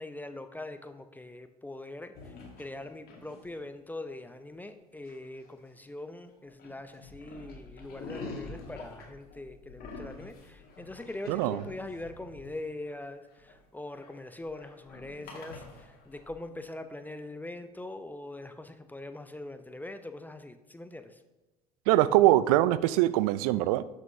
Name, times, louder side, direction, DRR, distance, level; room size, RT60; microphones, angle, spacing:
voice 1, 0.0-21.2, left 2 dB, 10° left, 9 dB, 0.6 m, -42 dB
sound 1, 2.2-3.6 5.1-6.0 6.3-16.3, left 3 dB, 50° left, 2.0 m, -46 dB
voice 2, 11.3-11.6 21.9-23.8, right 15 dB, 65° right, 17 dB, 0.4 m, -23 dB
12.0 x 6.2 x 2.7 m, 1.1 s
figure-of-eight pair, 65°, 21 cm